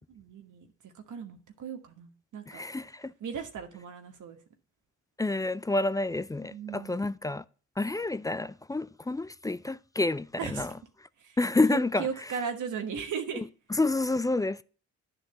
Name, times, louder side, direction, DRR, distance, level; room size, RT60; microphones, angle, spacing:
voice 1, 0.1-2.6 3.2-4.4 6.5-7.0 10.4-10.7 11.2-11.4 11.7-13.4, right 7 dB, 70° right, 1.2 m, -37 dB
voice 2, 2.5-3.1 5.2-7.4 7.8-10.7 11.4-12.0 13.8-14.6, left 2 dB, 10° left, 0.3 m, -29 dB
9.9 x 3.9 x 6.4 m
supercardioid pair, 60°, 32 cm